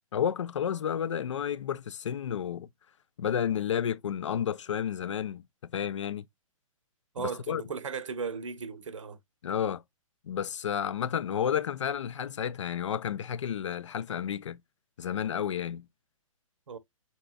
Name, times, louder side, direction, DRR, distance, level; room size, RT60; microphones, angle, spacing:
voice 1, 0.1-2.7 3.2-6.2 7.2-7.6 9.4-9.8 10.2-14.6 15.0-15.9, left 8 dB, 55° left, 0.4 m, -31 dB
voice 2, 7.1-9.2 16.7-16.8, right 6 dB, 60° right, 0.7 m, -36 dB
4.4 x 4.1 x 2.2 m
figure-of-eight pair, 125°, 18 cm